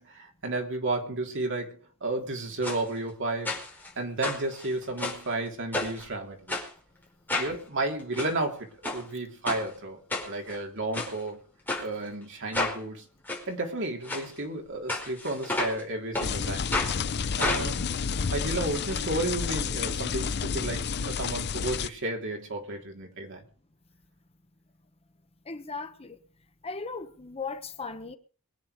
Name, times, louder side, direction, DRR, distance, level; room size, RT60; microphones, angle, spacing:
voice 1, 0.0-3.5 4.0-6.5 7.4-11.4 11.8-13.0 13.5-16.7 17.4-17.8 18.3-23.4, right 2 dB, 55° right, 3.5 m, -32 dB
sound 1, 2.6-2.8 3.4-3.9 4.2-5.3 5.7-6.0 6.5-6.7 7.3-7.5 8.0-8.3 8.8-9.0 9.4-9.6 10.1-10.6 10.9-11.1 11.7-11.8 12.5-12.8 13.3-13.4 14.0-14.2 14.9-15.8 16.1-16.3 16.7-16.9 17.4-18.9 19.2-19.3 19.5-19.6, left 2 dB, 10° left, 5.0 m, -31 dB
sound 2, 16.2-21.9, left 6 dB, 50° left, 0.6 m, -30 dB
voice 2, 25.5-26.2 26.6-28.2, left 4 dB, 25° left, 1.1 m, -37 dB
22.5 x 9.2 x 5.1 m
head